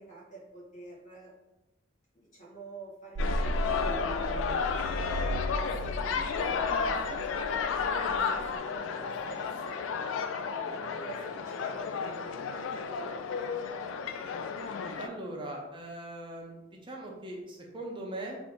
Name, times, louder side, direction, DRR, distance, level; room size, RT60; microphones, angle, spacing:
voice 1, 0.0-1.3 2.1-4.3 4.7-4.9 5.6-9.9 10.7-13.5, right 3 dB, 40° left, -5 dB, 1.3 m, -49 dB
sound 1, 3.2-15.1, left 5 dB, 85° left, 0.3 m, -32 dB
sound 2, 3.2-8.6, right 1 dB, 80° right, 0.4 m, -35 dB
voice 2, 15.0-18.4, right 1 dB, 25° right, 0 dB, 0.5 m, -40 dB
3.3 x 2.6 x 3.6 m, 0.99 s
head